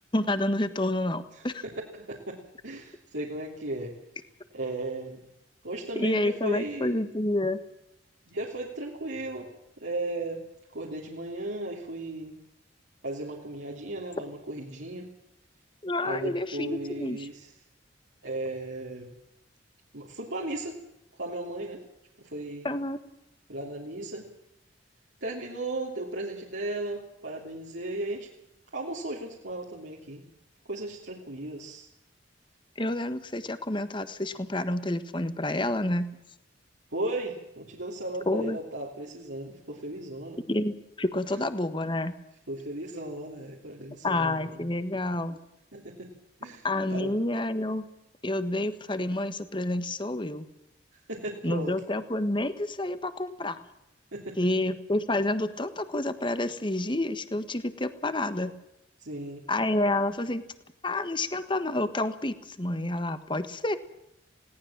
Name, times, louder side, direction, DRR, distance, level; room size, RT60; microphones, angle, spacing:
voice 1, 0.1-1.6 5.9-7.6 15.8-17.3 22.6-23.0 32.8-36.1 38.3-38.6 40.5-42.1 44.0-45.4 46.6-47.8 48.2-50.5 51.4-53.6 54.4-58.5 59.5-60.4 60.8-63.8, left 1 dB, 25° left, 11 dB, 1.4 m, -29 dB
voice 2, 1.3-3.9 4.5-5.2 5.6-7.0 8.2-10.4 10.7-12.4 13.0-15.1 16.0-17.5 18.2-19.1 19.9-20.8 21.2-21.8 22.2-22.7 23.5-24.3 25.2-28.3 28.7-30.2 30.7-31.9 36.9-40.4 42.5-44.7 45.3-45.4 45.7-46.1 46.4-47.2 50.9-51.8 54.1-54.4 59.0-59.4, right 2 dB, 70° right, -3 dB, 3.2 m, -36 dB
20.5 x 18.0 x 7.4 m, 0.84 s
head